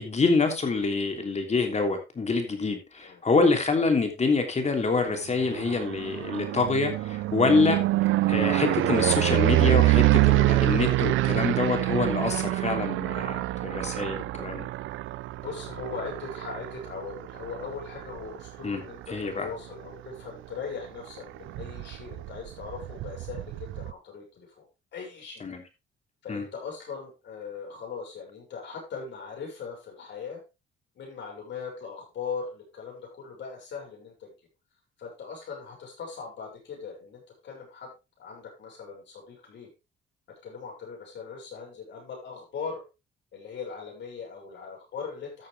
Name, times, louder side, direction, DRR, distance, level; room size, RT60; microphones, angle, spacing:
voice 1, 0.0-7.8 8.3-14.7 18.6-18.8 19.1-19.5 25.4-25.6 26.3-26.4, left 4 dB, 35° left, 5 dB, 3.1 m, -26 dB
sound 1, 5.3-19.3 19.7-20.2 20.5-20.6 20.8-23.9, right 17 dB, 80° right, 0.5 m, -26 dB
voice 2, 15.3-24.6 24.9-25.5 26.2-30.4 31.0-34.3 35.0-37.9 38.2-39.7 40.4-42.8 43.3-45.5, left 5 dB, 65° left, 0 dB, 6.6 m, -39 dB
14.0 x 6.8 x 3.5 m, 0.26 s
cardioid pair, 90°, 20 cm